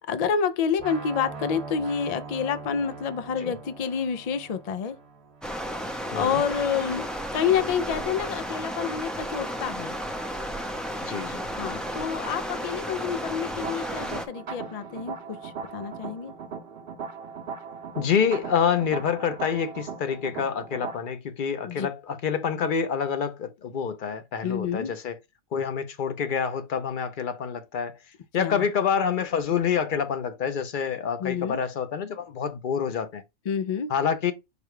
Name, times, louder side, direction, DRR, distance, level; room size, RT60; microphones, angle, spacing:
voice 1, 0.1-5.0 6.1-9.9 11.6-16.3 21.6-21.9 24.4-24.9 28.4-28.7 31.2-31.6 33.5-33.9, left 7 dB, 75° left, 0.3 m, -28 dB
sound 1, 0.8-6.7, right 4 dB, 30° right, 0.9 m, -42 dB
Stream, 5.4-14.3, equal, ahead, 0.4 m, -33 dB
voice 2, 11.0-11.4 18.0-25.2 25.5-27.9 28.3-33.2 33.9-34.3, left 7 dB, 55° left, 0.7 m, -27 dB
sound 2, 13.6-20.9, right 6 dB, 60° right, 0.8 m, -38 dB
5.0 x 2.2 x 4.7 m
omnidirectional pair, 1.2 m